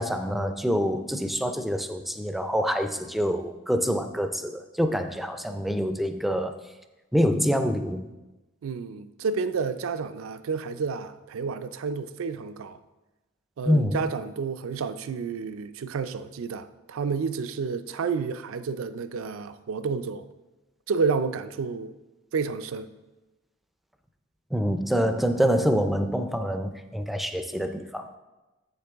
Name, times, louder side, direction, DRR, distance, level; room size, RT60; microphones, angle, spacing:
voice 1, 0.0-6.6 7.1-8.1 13.7-14.0 24.5-28.1, equal, ahead, 0.3 m, -26 dB
voice 2, 8.6-12.8 13.6-20.3 20.9-21.9 22.3-22.9, right 5 dB, 80° right, 0.4 m, -30 dB
7.5 x 6.6 x 3.5 m
head